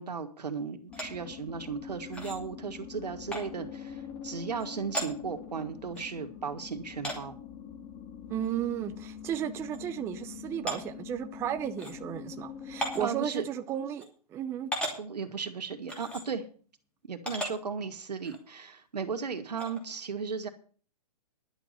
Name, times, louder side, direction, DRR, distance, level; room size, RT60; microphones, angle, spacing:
voice 1, 0.0-7.3 13.0-13.4 15.0-16.4 17.1-20.5, right 5 dB, 85° right, 2.2 m, -36 dB
sound 1, 0.9-13.1, left 7 dB, 20° left, 1.5 m, -44 dB
sound 2, 0.9-1.1 2.1-2.4 3.3-3.4 4.6-4.7 4.9-5.1 6.0-6.1 7.0-7.2 8.4-8.5 8.9-9.0 9.7-9.8 10.7-10.8 11.8-11.9 12.8-13.1 14.0-14.1 14.7-15.0 15.9-16.2 17.3-17.5 18.2-18.4 19.6-19.8, equal, 5° left, 2.7 m, -35 dB
voice 2, 8.3-14.7, right 10 dB, 15° right, 0.6 m, -34 dB
11.0 x 7.0 x 8.1 m
hypercardioid pair, 145°, 20 cm